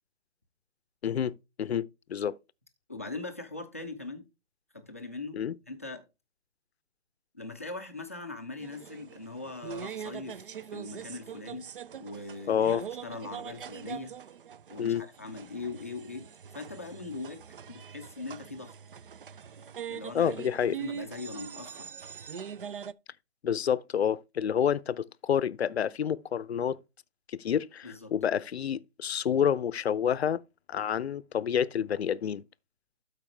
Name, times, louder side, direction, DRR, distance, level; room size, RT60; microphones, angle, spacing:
voice 1, 1.0-2.4 5.3-5.5 12.5-12.8 14.8-15.0 20.1-20.8 23.4-26.8 27.3-30.4 30.7-32.4, left 8 dB, 70° left, 0.6 m, -28 dB
voice 2, 2.9-4.2 4.7-5.4 5.7-6.0 7.3-10.5 10.7-11.6 12.0-14.1 14.7-16.2 16.5-17.4 17.7-18.7 19.9-21.9 27.8-28.1, left 3 dB, 15° left, 0.5 m, -41 dB
sound 1, 8.6-22.9, right 8 dB, 50° right, 0.5 m, -43 dB
12.5 x 4.7 x 3.3 m
hypercardioid pair, 160°, 34 cm